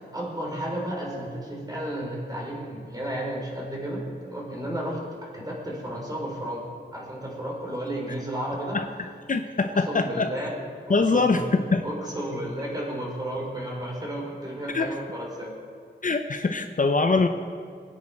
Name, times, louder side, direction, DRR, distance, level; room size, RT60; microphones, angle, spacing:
voice 1, 0.1-8.8 9.9-10.6 10.9-15.5, right 1 dB, 20° right, -3 dB, 4.4 m, -33 dB
voice 2, 9.3-10.3 10.9-11.9 12.3-12.4 14.7-14.9 16.0-17.3, left 3 dB, 45° left, 6 dB, 0.7 m, -23 dB
22.0 x 9.8 x 4.5 m, 2.2 s
wide cardioid pair, 110°, 19 cm